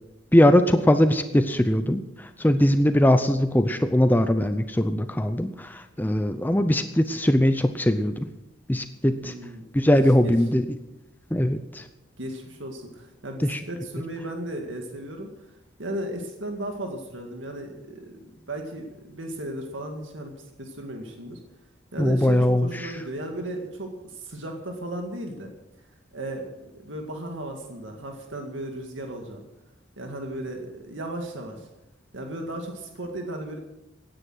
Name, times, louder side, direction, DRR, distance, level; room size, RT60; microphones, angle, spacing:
voice 1, 0.3-8.3 8.7-9.3 9.7-10.6 11.3-11.8 13.4-13.6 22.0-22.9, left 1 dB, 10° left, 9 dB, 0.6 m, -21 dB
voice 2, 9.2-9.7 9.9-10.3 12.2-21.4 21.9-25.5 26.1-29.4 30.0-31.7 32.1-33.6, right 1 dB, 80° right, 3 dB, 2.0 m, -35 dB
16.5 x 10.0 x 6.3 m, 0.93 s
head